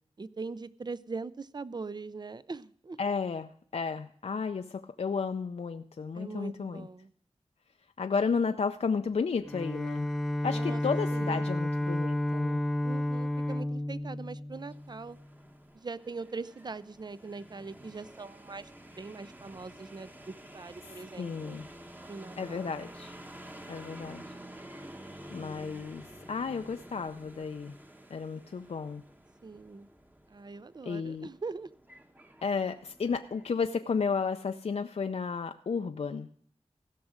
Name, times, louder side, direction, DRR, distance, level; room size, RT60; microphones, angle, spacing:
voice 1, 0.2-3.0 6.1-7.1 10.5-10.8 11.1-11.5 12.8-15.2 15.7-18.7 19.0-21.6 22.1-22.8 29.4-29.9 30.3-31.7, right 4 dB, 40° right, 17 dB, 0.5 m, -41 dB
voice 2, 3.0-6.9 8.0-10.1 10.4-12.6 20.8-21.7 22.4-23.1 23.7-24.4 25.3-27.8 28.1-29.0 30.8-31.3 32.4-36.3, left 5 dB, 65° left, 8 dB, 0.4 m, -33 dB
Bowed string instrument, 9.4-15.1, left 1 dB, 5° left, 0.6 m, -31 dB
sound 1, 14.5-33.5, right 1 dB, 15° right, 1.1 m, -50 dB
16.0 x 6.2 x 6.3 m, 0.62 s
wide cardioid pair, 55°, 11 cm